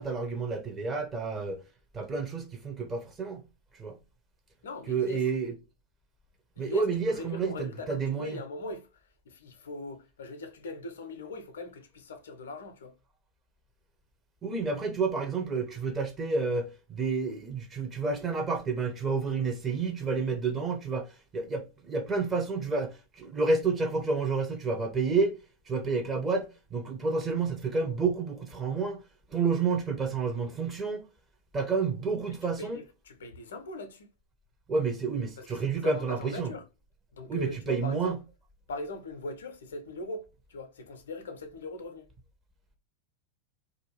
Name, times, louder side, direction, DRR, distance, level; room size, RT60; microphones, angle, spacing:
voice 1, 0.0-1.6 1.9-3.4 3.7-3.9 4.9-5.5 6.6-8.4 14.4-25.4 25.7-29.0 29.3-31.0 31.5-32.8 34.7-36.5 37.3-38.2, right 4 dB, 20° right, 0.6 m, -30 dB
voice 2, 4.6-5.2 6.6-12.9 32.6-34.1 35.4-36.6 37.1-38.2 38.7-42.1, left 2 dB, 65° left, 0.4 m, -40 dB
2.5 x 2.2 x 3.0 m
figure-of-eight pair, 90°, 0 cm